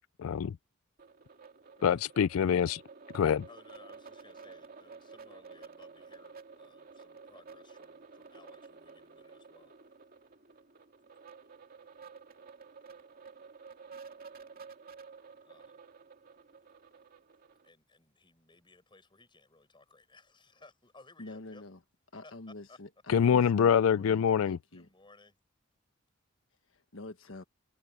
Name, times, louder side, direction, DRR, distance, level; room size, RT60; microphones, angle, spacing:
voice 1, 0.2-0.6 1.8-2.8 3.1-3.5 23.1-24.6, left 7 dB, 90° left, 0.4 m, -25 dB
sound 1, 1.0-17.7, right 5 dB, 45° right, 2.6 m, -52 dB
voice 2, 3.5-9.7 15.4-15.9 17.6-21.6 22.2-22.3 22.7-22.8 24.7-25.4, left 3 dB, 25° left, 7.0 m, -59 dB
voice 3, 21.2-21.8 22.1-24.9 26.6-27.4, left 2 dB, 70° left, 1.4 m, -47 dB
head